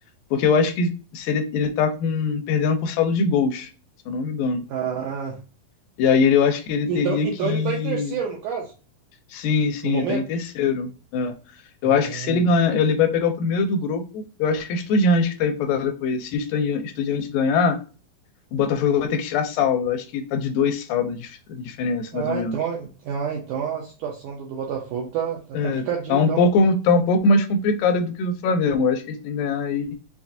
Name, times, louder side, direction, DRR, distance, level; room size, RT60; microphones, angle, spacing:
voice 1, 0.3-3.7 4.1-4.6 6.0-8.2 9.3-11.3 11.8-17.8 18.5-22.6 25.6-25.8 26.1-30.0, left 4 dB, 80° left, 7 dB, 2.1 m, -22 dB
voice 2, 4.7-5.4 6.9-8.7 9.8-10.2 11.8-12.4 22.1-26.4, right 7 dB, 75° right, 0 dB, 1.8 m, -28 dB
5.9 x 2.1 x 2.6 m, 0.34 s
omnidirectional pair, 4.2 m